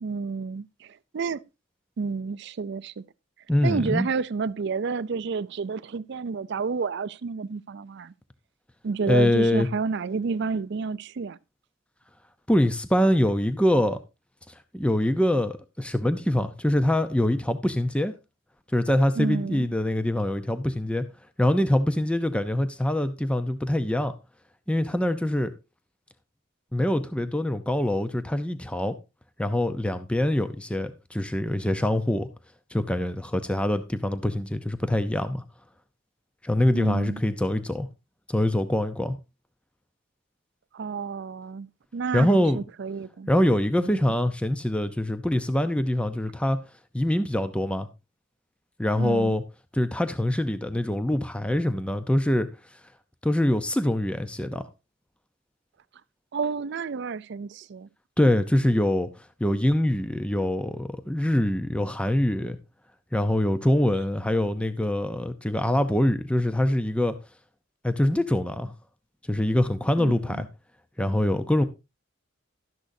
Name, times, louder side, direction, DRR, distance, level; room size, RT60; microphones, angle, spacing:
voice 1, 0.0-1.4 2.0-3.0 3.6-8.1 8.8-11.4 19.2-19.7 36.7-37.2 40.7-43.3 43.8-44.1 49.0-49.4 56.3-57.9 70.0-70.4, right 5 dB, 55° right, 0.4 m, -30 dB
voice 2, 3.5-4.1 9.1-9.7 12.5-14.0 14.7-18.1 18.7-21.0 21.4-24.2 24.7-25.5 26.7-29.0 29.4-32.3 32.7-35.4 36.4-37.9 38.3-39.2 42.1-42.6 43.3-46.6 46.9-47.9 48.8-49.4 49.7-52.5 53.2-54.6 58.2-59.1 59.4-62.6 63.1-67.1 67.8-68.7 69.3-70.5 71.0-71.6, left 1 dB, 5° left, 0.6 m, -24 dB
12.5 x 10.5 x 2.7 m
head